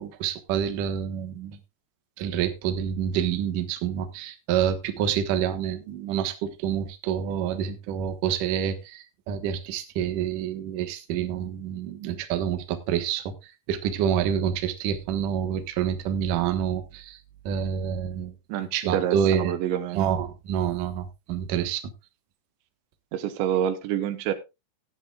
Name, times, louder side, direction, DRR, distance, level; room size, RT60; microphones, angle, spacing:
voice 1, 0.0-1.6 2.2-17.2 17.5-18.3 18.7-19.5 19.9-21.8, right 9 dB, 60° right, 8 dB, 2.5 m, -27 dB
voice 2, 18.5-20.1 23.1-24.3, right 10 dB, 85° right, 10 dB, 3.4 m, -27 dB
17.0 x 10.5 x 2.4 m, 0.24 s
omnidirectional pair, 5.0 m